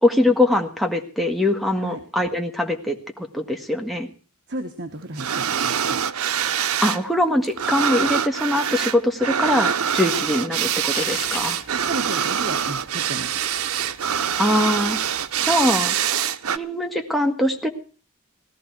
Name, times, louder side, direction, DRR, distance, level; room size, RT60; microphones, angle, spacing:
voice 1, 0.0-4.1 6.8-11.6 14.4-15.0 15.4-16.0 16.5-17.7, left 1 dB, ahead, 2 dB, 1.8 m, -22 dB
voice 2, 4.5-6.0 11.8-13.4, right 2 dB, 55° right, 7 dB, 1.5 m, -33 dB
sound 1, 5.1-7.0 7.3-16.6, right 8 dB, 90° right, 0.7 m, -24 dB
sound 2, 10.9-16.0, left 5 dB, 30° left, 3.9 m, -41 dB
18.0 x 13.5 x 4.7 m, 0.38 s
head